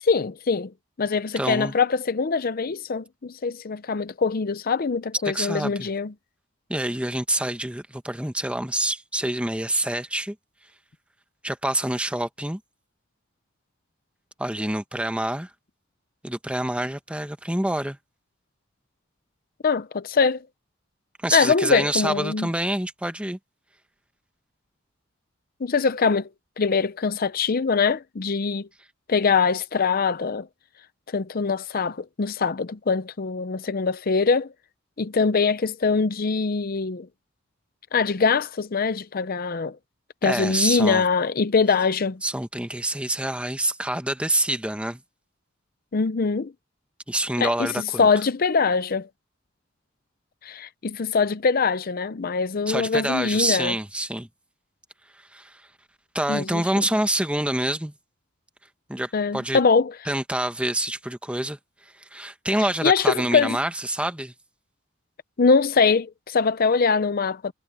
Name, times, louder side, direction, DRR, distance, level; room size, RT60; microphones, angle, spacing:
voice 1, 0.0-0.7 1.0-6.1 19.6-20.4 21.3-22.5 25.6-26.3 26.6-28.7 29.1-30.5 31.1-34.5 35.0-37.1 37.9-39.8 40.2-42.2 45.9-46.5 47.4-47.7 48.0-49.1 50.4-53.7 56.3-56.8 59.1-59.9 62.8-63.6 65.4-67.5, left 5 dB, 45° left, 0.6 m, -23 dB
voice 2, 1.4-1.7 5.2-5.9 6.7-10.4 11.4-12.6 14.4-15.5 16.2-18.0 21.2-23.4 40.2-41.1 42.2-45.0 47.1-48.1 52.7-54.3 55.3-55.6 56.1-57.9 58.9-59.6 60.1-64.3, right 1 dB, 5° right, 1.1 m, -27 dB
head